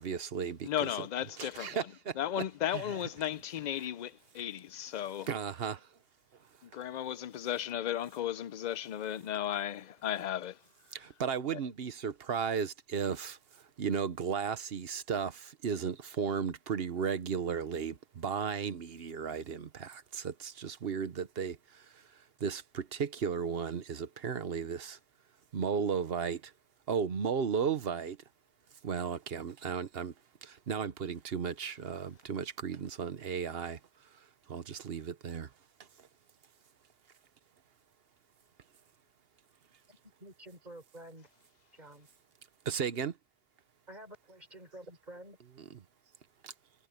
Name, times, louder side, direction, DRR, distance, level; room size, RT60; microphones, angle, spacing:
voice 1, 0.0-0.9 1.4-2.1 5.3-5.8 10.9-13.4 13.8-21.6 22.4-25.0 25.5-26.4 26.9-28.2 28.8-30.1 30.4-33.8 34.5-35.5 42.7-43.1 45.7-45.8, right 6 dB, 65° right, 1.2 m, -34 dB
voice 2, 0.6-1.9 2.2-5.3 6.6-10.6 11.5-11.6, left 11 dB, 55° left, 0.5 m, -35 dB
voice 3, 39.9-41.3 41.7-42.1 43.9-45.4, right 1 dB, 40° right, 4.6 m, -50 dB
omnidirectional pair, 1.1 m